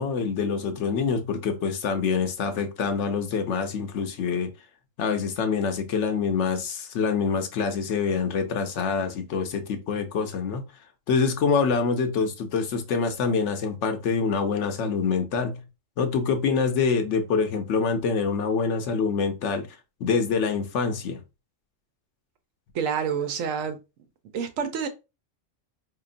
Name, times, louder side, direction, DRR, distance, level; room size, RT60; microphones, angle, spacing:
voice 1, 0.0-4.5 5.0-10.6 11.1-15.6 16.0-19.7 20.0-21.2, left 5 dB, 70° left, 0.9 m, -25 dB
voice 2, 22.7-23.8 24.3-24.9, right 7 dB, 80° right, 1.0 m, -28 dB
4.6 x 2.8 x 2.5 m
omnidirectional pair, 1.3 m